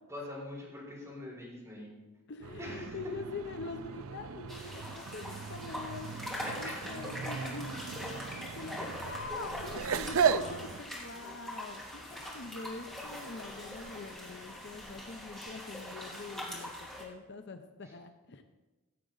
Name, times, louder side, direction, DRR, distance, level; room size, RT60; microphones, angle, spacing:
voice 1, 0.1-1.9 2.6-2.9 6.4-7.0 8.8-8.9, left 1 dB, 15° right, -4 dB, 3.8 m, -43 dB
voice 2, 2.3-6.1 6.6-18.4, left 4 dB, 55° left, 7 dB, 0.7 m, -44 dB
sound 1, 2.4-10.8, right 7 dB, 70° right, 0.4 m, -36 dB
sound 2, 4.5-17.0, left 1 dB, ahead, 2.3 m, -42 dB
15.5 x 7.5 x 3.9 m, 1.1 s
head